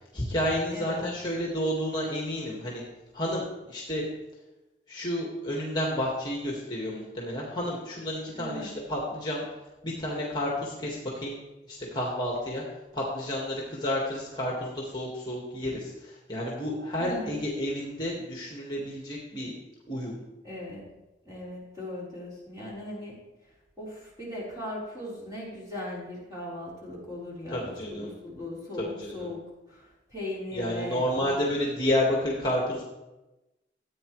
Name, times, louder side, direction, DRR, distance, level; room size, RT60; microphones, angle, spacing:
voice 1, 0.1-2.8 3.1-4.1 4.9-9.4 9.8-11.4 11.7-12.6 12.9-19.5 19.9-20.2 27.5-28.1 28.8-29.3 30.5-32.8, left 1 dB, 25° left, -3 dB, 1.7 m, -30 dB
voice 2, 0.7-1.1 8.3-8.7 17.0-17.4 20.4-20.8 21.2-23.2 23.8-29.4 29.7-31.3, left 1 dB, 20° right, -6 dB, 4.1 m, -38 dB
14.5 x 8.8 x 3.2 m, 1.0 s
head